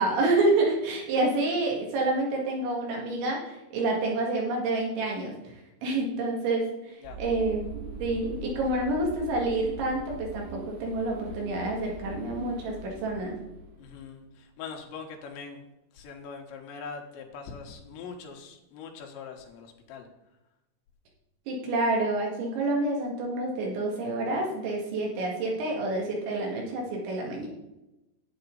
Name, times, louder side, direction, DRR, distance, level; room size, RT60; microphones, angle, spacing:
voice 1, 0.0-5.3 5.8-6.7 7.2-7.7 8.0-13.4 21.5-27.5, right 2 dB, 90° right, -1 dB, 4.4 m, -28 dB
sound 1, 7.0-14.5, right 2 dB, 70° right, 3.1 m, -42 dB
voice 2, 13.8-15.6 15.9-20.1, left 5 dB, 80° left, 2 dB, 3.6 m, -42 dB
9.6 x 9.3 x 3.9 m, 0.96 s
omnidirectional pair, 5.1 m